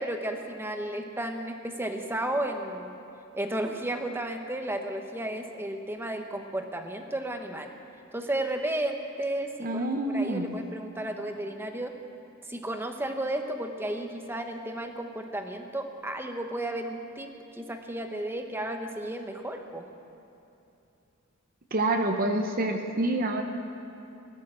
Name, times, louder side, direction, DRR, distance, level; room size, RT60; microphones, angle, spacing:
voice 1, 0.0-3.0 3.3-7.7 8.1-9.9 10.1-11.9 12.5-19.8, right 1 dB, 10° right, 4 dB, 1.0 m, -33 dB
voice 2, 9.6-10.5 21.7-23.4, right 2 dB, 40° right, 4 dB, 0.9 m, -27 dB
17.5 x 11.5 x 6.2 m, 2.8 s
head